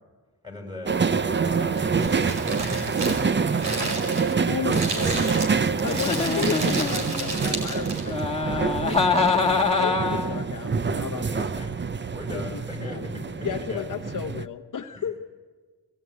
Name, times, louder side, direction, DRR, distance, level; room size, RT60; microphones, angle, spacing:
voice 1, 0.4-3.2 3.6-5.3 11.3-11.7 12.1-13.8 14.9-15.1, left 2 dB, 10° right, 1 dB, 6.8 m, -40 dB
sound 1, 0.8-14.5, right 5 dB, 25° right, 0.6 m, -26 dB
Crumpling crinkling, 1.4-8.2, right 2 dB, 85° right, 5.4 m, -32 dB
voice 2, 4.5-11.4 12.3-13.0 13.4-15.2, left 8 dB, 50° left, 3 dB, 0.9 m, -34 dB
Giggle, 5.8-7.3 8.1-10.4, left 4 dB, 15° left, 1.8 m, -25 dB
22.5 x 16.5 x 9.4 m, 1.5 s
wide cardioid pair, 110°, 41 cm